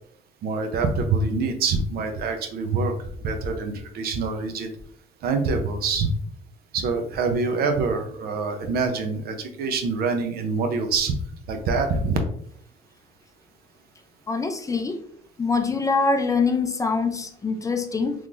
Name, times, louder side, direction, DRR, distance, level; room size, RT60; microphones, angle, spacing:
voice 1, 0.4-4.7 5.2-6.1 6.7-11.1 11.5-12.2, right 4 dB, 65° right, 5 dB, 0.7 m, -25 dB
voice 2, 14.3-15.0 15.4-18.1, left 4 dB, 20° left, 5 dB, 0.4 m, -24 dB
3.6 x 3.1 x 2.5 m, 0.63 s
cardioid pair, 110°, 17 cm